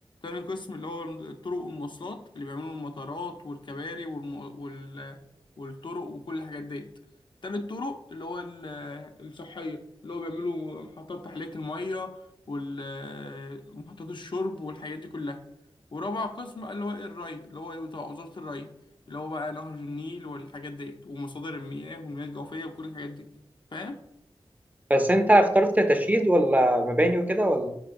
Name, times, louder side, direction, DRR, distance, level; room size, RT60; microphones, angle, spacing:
voice 1, 0.2-5.2 5.6-6.9 7.4-12.2 12.5-15.4 15.9-18.7 19.1-23.3 23.7-24.0, left 2 dB, 55° left, 5 dB, 0.5 m, -36 dB
voice 2, 24.9-27.7, right 1 dB, 15° right, 6 dB, 0.5 m, -21 dB
4.8 x 4.3 x 2.5 m, 0.81 s
cardioid pair, 45°, 10 cm